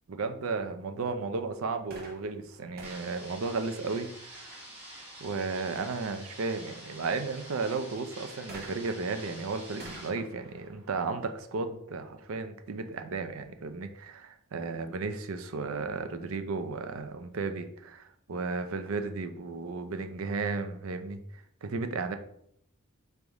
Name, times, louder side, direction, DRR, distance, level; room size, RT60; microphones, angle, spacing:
voice 1, 0.1-4.5 5.2-22.2, right 4 dB, 70° right, 8 dB, 0.5 m, -34 dB
sound 1, 1.9-4.4 8.5-12.1 12.9-13.0, right 2 dB, 45° right, 1.1 m, -51 dB
sound 2, 2.8-10.1, right 1 dB, 10° right, 1.3 m, -47 dB
4.0 x 3.4 x 3.5 m, 0.70 s
head